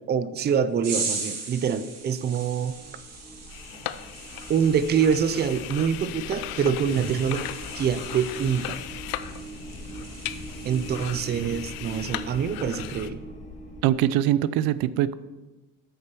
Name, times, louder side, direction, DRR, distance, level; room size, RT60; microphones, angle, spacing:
voice 1, 0.1-2.7 4.5-7.4 7.7-8.8 10.6-13.2, right 7 dB, 30° right, 13 dB, 0.5 m, -25 dB
sound 1, 0.8-11.5 11.9-12.2, right 4 dB, 45° right, 2.6 m, -39 dB
sound 2, 1.9-13.8, equal, 20° left, 1.7 m, -42 dB
sound 3, 3.5-13.1, left 14 dB, 85° left, 0.7 m, -38 dB
voice 2, 13.8-15.1, right 12 dB, 85° right, 17 dB, 0.6 m, -22 dB
9.1 x 6.6 x 6.7 m, 1.1 s
cardioid pair, 140°, 35 cm